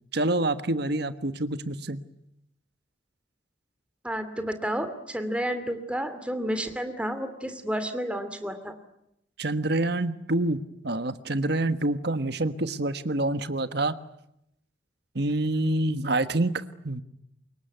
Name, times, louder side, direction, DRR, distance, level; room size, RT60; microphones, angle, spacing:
voice 1, 0.1-2.0 9.4-13.9 15.1-17.0, right 2 dB, 55° right, 12 dB, 1.4 m, -27 dB
voice 2, 4.0-8.7, equal, 5° right, 9 dB, 2.5 m, -31 dB
25.0 x 22.5 x 9.4 m, 0.79 s
head